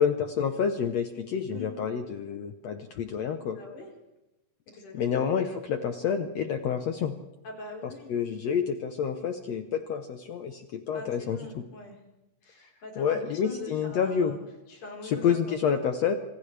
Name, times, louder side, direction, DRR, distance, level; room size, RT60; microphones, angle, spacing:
voice 1, 0.0-3.6 4.9-7.1 8.1-11.4 13.0-14.4 15.0-16.2, left 7 dB, 75° left, 6 dB, 1.5 m, -28 dB
voice 2, 3.5-3.9 4.7-5.2 7.4-8.1 10.9-12.0 12.4-14.4 14.7-15.6, left 2 dB, 55° left, -1 dB, 5.6 m, -43 dB
29.5 x 26.5 x 3.4 m, 0.99 s
omnidirectional pair, 4.3 m